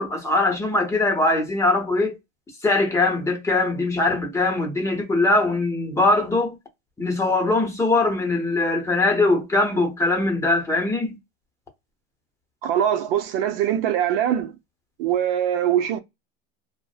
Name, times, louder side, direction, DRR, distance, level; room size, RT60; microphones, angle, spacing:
voice 1, 0.0-2.1 2.6-6.6 7.0-11.2, left 2 dB, 10° left, 0.7 m, -21 dB
voice 2, 12.6-14.5 15.0-16.0, right 10 dB, 65° right, 0.6 m, -22 dB
2.6 x 2.1 x 2.3 m
supercardioid pair, 135°, 30 cm